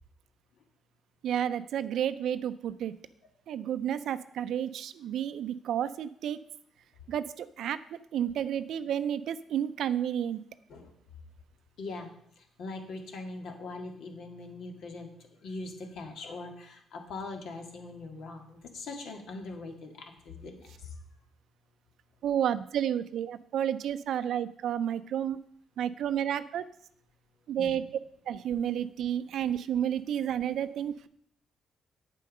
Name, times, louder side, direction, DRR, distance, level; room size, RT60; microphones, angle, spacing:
voice 1, 1.2-2.9 3.5-6.4 7.1-10.4 22.2-25.4 25.8-26.6 27.5-27.8 28.3-31.1, right 9 dB, 75° right, 12 dB, 0.4 m, -31 dB
voice 2, 11.8-12.1 12.6-15.1 15.4-20.9 27.6-27.7, left 3 dB, 75° left, 4 dB, 1.9 m, -41 dB
8.3 x 7.7 x 5.4 m, 0.68 s
cardioid pair, 75°, 0 cm